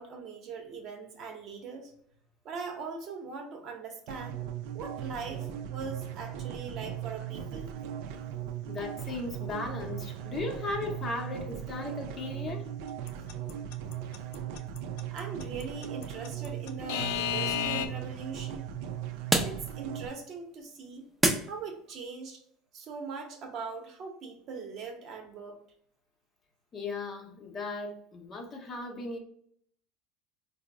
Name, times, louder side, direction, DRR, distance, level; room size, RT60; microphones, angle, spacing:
voice 1, 0.0-1.9 2.4-4.4 4.7-7.7 15.1-18.7 19.4-21.1 21.4-22.4 22.7-25.6, right 5 dB, 50° right, 3 dB, 0.7 m, -41 dB
sound 1, 4.1-20.1, right 10 dB, 75° right, 0.4 m, -38 dB
voice 2, 8.7-12.7 26.7-29.2, left 3 dB, 35° left, 3 dB, 0.7 m, -37 dB
Alarm / Clock, 13.1-17.9, left 9 dB, 75° left, 0.3 m, -31 dB
sound 2, 16.0-22.1, right 1 dB, 10° right, 0.5 m, -35 dB
3.8 x 2.0 x 3.5 m, 0.65 s
supercardioid pair, 105°, 0 cm